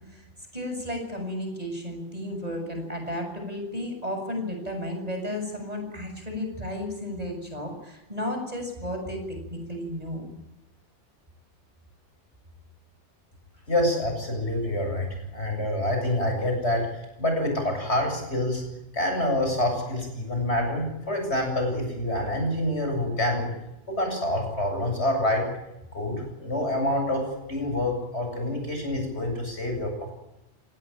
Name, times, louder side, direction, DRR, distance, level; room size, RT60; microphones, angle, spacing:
voice 1, 0.5-9.2 9.5-10.2, left 1 dB, 30° right, 3 dB, 7.2 m, -33 dB
voice 2, 13.7-15.1 15.3-16.9 17.2-18.6 18.9-23.5 23.9-25.4 25.9-29.9, left 1 dB, 65° left, 3 dB, 8.3 m, -27 dB
28.5 x 18.0 x 9.0 m, 0.92 s
omnidirectional pair, 1.2 m